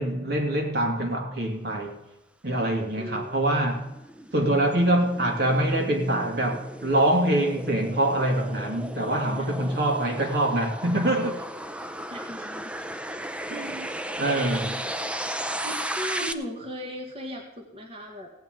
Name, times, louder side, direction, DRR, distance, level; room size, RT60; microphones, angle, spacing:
voice 1, 0.0-1.9 2.4-3.8 4.3-11.4 13.5-14.8, right 1 dB, 60° right, 2.6 m, -25 dB
voice 2, 2.9-3.7 9.3-9.5 12.1-12.9 14.3-14.8 15.6-18.3, equal, 35° right, 1.7 m, -38 dB
sound 1, 3.1-16.3, right 1 dB, 5° right, 0.6 m, -35 dB
16.0 x 5.9 x 9.3 m
head